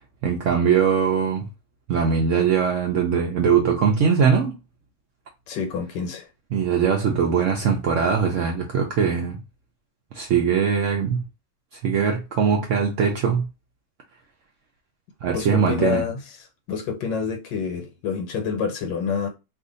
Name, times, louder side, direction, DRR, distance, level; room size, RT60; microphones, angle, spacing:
voice 1, 0.2-1.5 1.9-4.6 6.5-9.4 10.1-11.2 11.8-13.5 15.2-16.0, right 6 dB, 80° right, 0.7 m, -21 dB
voice 2, 5.5-6.3 15.3-16.2 16.7-19.3, left 6 dB, 80° left, 1.3 m, -27 dB
2.8 x 2.5 x 3.7 m
omnidirectional pair, 1.9 m